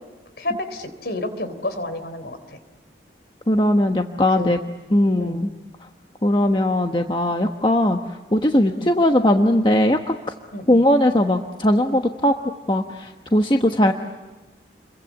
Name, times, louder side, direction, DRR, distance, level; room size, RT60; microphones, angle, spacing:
voice 1, 0.4-2.6 4.4-4.6 5.2-5.4 8.7-8.9 10.5-10.8, left 1 dB, 65° left, 11 dB, 3.7 m, -30 dB
voice 2, 3.5-4.6 4.9-5.5 6.2-8.0 8.3-10.2 10.7-12.3 12.7-13.9, left 1 dB, 25° left, 4 dB, 1.2 m, -19 dB
30.0 x 23.0 x 8.2 m, 1.2 s
head